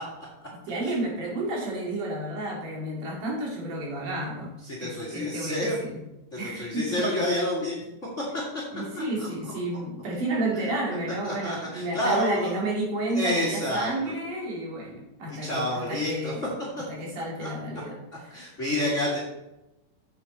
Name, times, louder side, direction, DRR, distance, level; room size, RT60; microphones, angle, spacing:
voice 1, 0.7-4.5 4.8-6.0 6.4-7.0 8.7-16.5 16.9-18.0 18.2-18.5, right 1 dB, 70° right, -3 dB, 4.0 m, -31 dB
voice 2, 4.6-5.8 6.3-7.8 8.2-8.3 9.0-9.5 10.5-10.6 11.2-12.5 13.1-14.1 15.3-16.3 17.4-17.5 18.3-19.2, left 1 dB, 30° left, -4 dB, 1.8 m, -29 dB
8.0 x 7.6 x 4.1 m, 0.92 s
omnidirectional pair, 3.7 m